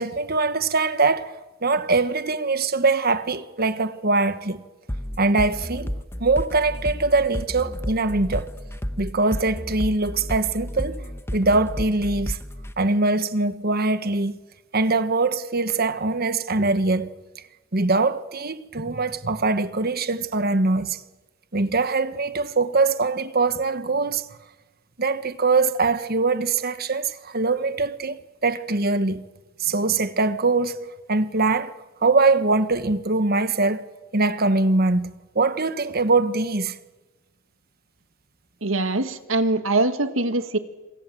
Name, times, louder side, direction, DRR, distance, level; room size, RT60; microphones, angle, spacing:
voice 1, 0.0-1.3 1.6-4.6 5.2-5.9 6.2-8.5 9.0-11.0 11.3-12.4 12.8-14.4 14.7-17.1 17.7-21.0 21.5-24.2 25.0-29.2 29.6-30.8 31.1-31.7 32.0-36.8, right 3 dB, 50° right, 1.4 m, -22 dB
sound 1, 4.9-12.7, equal, 10° left, 1.1 m, -31 dB
voice 2, 38.6-40.6, right 2 dB, 80° right, 2.1 m, -23 dB
26.5 x 26.5 x 7.8 m
head